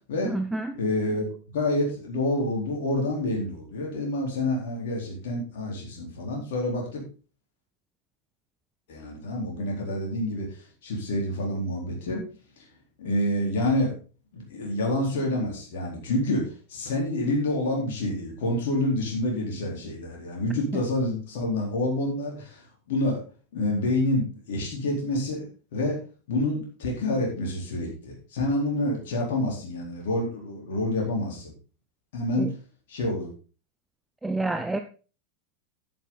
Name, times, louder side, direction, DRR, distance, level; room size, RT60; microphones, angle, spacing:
voice 1, 0.2-0.7 32.4-32.5 34.2-34.8, right 2 dB, 5° right, 8 dB, 0.7 m, -28 dB
voice 2, 0.8-7.0 8.9-10.5 10.8-12.2 13.0-13.9 14.3-22.6 22.9-23.2 23.5-25.5 25.7-26.0 26.3-31.5 32.1-32.5 32.9-33.3, left 1 dB, 55° left, -1 dB, 4.2 m, -28 dB
10.0 x 9.1 x 4.2 m, 0.35 s
figure-of-eight pair, 90°, 0 cm